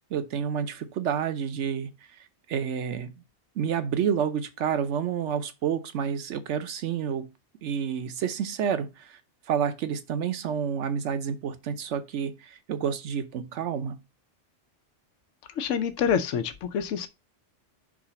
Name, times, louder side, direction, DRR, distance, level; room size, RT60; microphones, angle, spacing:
voice 1, 0.1-3.2 3.6-7.3 7.6-9.2 9.5-14.0, right 7 dB, 75° right, 1.1 m, -29 dB
voice 2, 15.6-17.1, left 7 dB, 90° left, 1.0 m, -27 dB
5.0 x 3.9 x 5.7 m
omnidirectional pair, 1.2 m